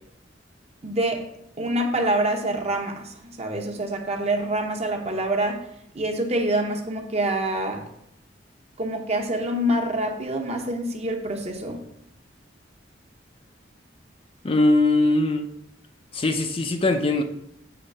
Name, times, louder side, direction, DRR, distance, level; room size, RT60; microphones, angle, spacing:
voice 1, 0.8-1.2 1.6-5.6 5.9-7.8 8.8-11.8, right 1 dB, 35° right, 3 dB, 0.9 m, -26 dB
voice 2, 14.4-15.5 16.1-17.2, left 2 dB, 30° left, 6 dB, 0.5 m, -21 dB
7.7 x 3.2 x 5.4 m, 0.76 s
head